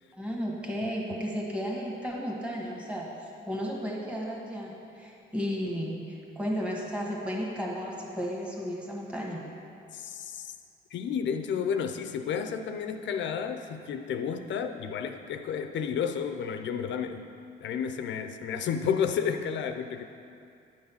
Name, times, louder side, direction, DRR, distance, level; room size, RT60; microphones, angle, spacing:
voice 1, 0.2-9.4, equal, 5° right, -3 dB, 1.5 m, -34 dB
voice 2, 9.9-10.6 10.9-17.3 17.6-20.0, left 7 dB, 65° left, 7 dB, 0.5 m, -31 dB
10.0 x 3.9 x 7.1 m, 2.5 s
cardioid pair, 90°, 20 cm